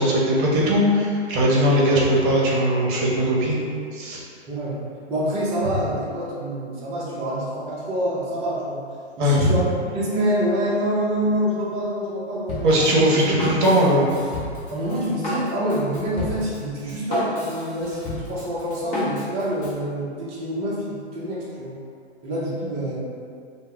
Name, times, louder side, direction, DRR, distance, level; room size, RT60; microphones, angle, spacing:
voice 1, 0.0-3.6 3.9-4.2 9.2-9.5 12.6-14.1, equal, 50° right, -4 dB, 0.8 m, -19 dB
voice 2, 5.1-8.9 9.2-9.6 9.9-12.9 14.7-21.8 22.2-23.0, equal, 20° right, -6 dB, 0.5 m, -26 dB
Drum kit, 12.5-19.8, left 1 dB, 25° left, 0.7 m, -32 dB
2.2 x 2.1 x 3.6 m, 2.3 s
hypercardioid pair, 120°, 34 cm